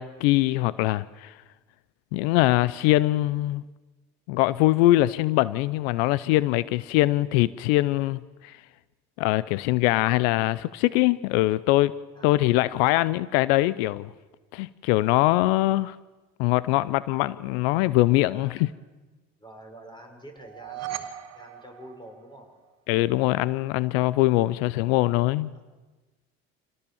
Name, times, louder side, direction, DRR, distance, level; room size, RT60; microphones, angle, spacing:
voice 1, 0.0-1.3 2.1-3.6 4.3-8.6 9.2-11.9 12.2-14.1 14.5-16.0 16.4-18.7 22.9-25.5, left 17 dB, 80° left, 0.6 m, -22 dB
voice 2, 18.3-18.7 19.4-22.5 25.5-25.7, right 1 dB, 15° left, 6.1 m, -47 dB
sound 1, 20.4-22.7, right 12 dB, 55° right, 2.2 m, -38 dB
26.0 x 18.0 x 7.1 m
supercardioid pair, 80°, 30 cm